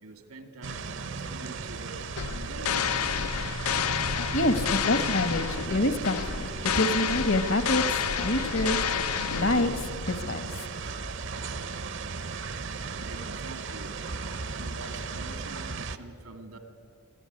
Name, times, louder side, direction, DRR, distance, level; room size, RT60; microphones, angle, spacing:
voice 1, 0.0-3.1 13.0-14.0 14.5-16.6, right 2 dB, 90° right, 7 dB, 2.4 m, -45 dB
sound 1, 0.6-16.0, right 4 dB, 55° right, 0.7 m, -36 dB
sound 2, 2.2-10.0, left 8 dB, 80° left, 0.5 m, -30 dB
voice 2, 4.3-6.5 6.7-8.8 9.3-10.4, left 1 dB, 60° left, 11 dB, 1.2 m, -27 dB
24.5 x 14.0 x 9.7 m, 2.5 s
head